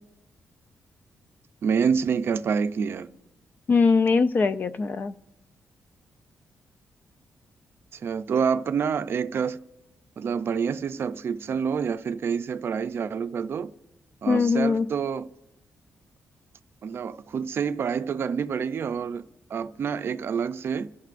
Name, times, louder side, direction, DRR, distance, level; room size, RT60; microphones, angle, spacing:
voice 1, 1.6-3.1 7.9-9.6 10.2-13.7 14.2-15.3 16.8-19.2 19.5-20.9, right 6 dB, 55° right, 0.5 m, -27 dB
voice 2, 3.7-5.1 14.3-14.9, left 4 dB, 40° left, 0.5 m, -21 dB
27.0 x 14.0 x 2.5 m
cardioid pair, 130°, 5 cm